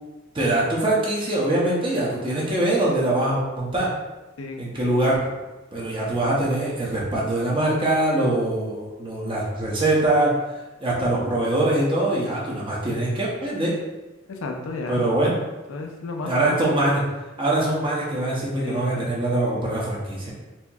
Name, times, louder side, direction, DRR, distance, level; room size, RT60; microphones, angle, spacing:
voice 1, 0.3-3.9 4.6-5.2 5.7-10.3 10.8-13.7 14.9-15.3 16.2-17.0 17.4-20.3, right 1 dB, 25° right, -6 dB, 0.7 m, -23 dB
voice 2, 14.3-15.1 15.7-16.6 18.5-19.1, left 3 dB, 90° left, 2 dB, 0.5 m, -32 dB
4.2 x 2.8 x 2.3 m, 1.1 s
head